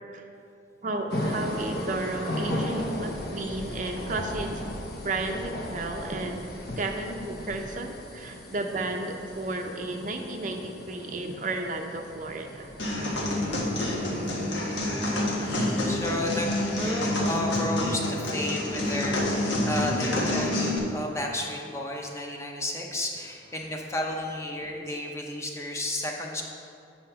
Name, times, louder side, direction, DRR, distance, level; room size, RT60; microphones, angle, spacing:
voice 1, 0.8-4.6 5.0-6.5 6.8-12.7 14.0-14.8, right 2 dB, 45° right, 4 dB, 0.6 m, -33 dB
sound 1, 1.1-17.4, left 1 dB, 55° left, 1.0 m, -37 dB
sound 2, 12.8-20.8, left 1 dB, 80° left, 1.4 m, -28 dB
voice 2, 15.4-26.4, left 1 dB, 15° left, 1 dB, 0.7 m, -32 dB
8.4 x 4.3 x 5.7 m, 2.5 s
head